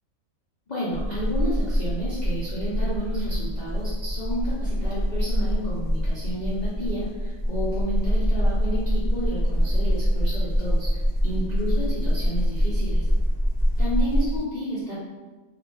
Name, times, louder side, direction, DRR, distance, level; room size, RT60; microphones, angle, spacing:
voice 1, 0.7-10.9 11.2-13.0 13.8-14.9, equal, 75° left, -9 dB, 0.4 m, -31 dB
sound 1, 0.9-14.4, equal, 35° right, 0.7 m, -24 dB
2.4 x 2.1 x 3.0 m, 1.3 s
omnidirectional pair, 1.5 m